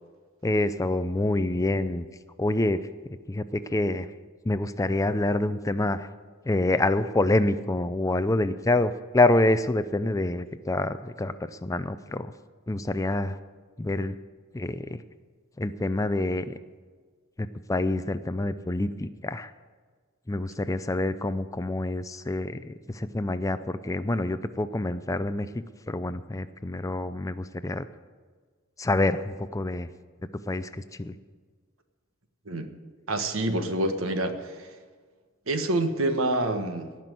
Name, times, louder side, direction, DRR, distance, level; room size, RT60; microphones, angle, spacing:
voice 1, 0.4-2.1 2.4-2.9 3.3-4.1 4.4-6.1 6.4-12.3 12.7-13.4 13.8-14.2 14.5-15.0 15.6-16.5 17.4-19.5 20.3-27.9 28.8-29.9 30.5-31.1, left 2 dB, 15° left, 12 dB, 0.5 m, -27 dB
voice 2, 33.1-34.7 35.5-36.9, right 1 dB, 80° right, 7 dB, 1.4 m, -27 dB
18.0 x 6.1 x 9.3 m, 1.5 s
head